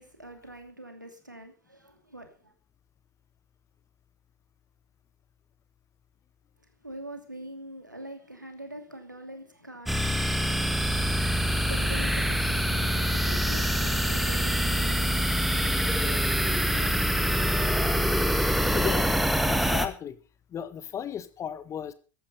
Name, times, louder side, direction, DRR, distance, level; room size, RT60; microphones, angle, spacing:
voice 1, 0.0-2.5 6.8-9.9 11.7-18.3, right 1 dB, 90° right, 5 dB, 2.7 m, -44 dB
sound 1, 9.9-19.9, equal, ahead, 1.7 m, -25 dB
voice 2, 18.7-20.2 20.5-21.9, left 8 dB, 30° left, 13 dB, 1.5 m, -35 dB
14.5 x 11.0 x 5.4 m, 0.36 s
figure-of-eight pair, 75°, 10 cm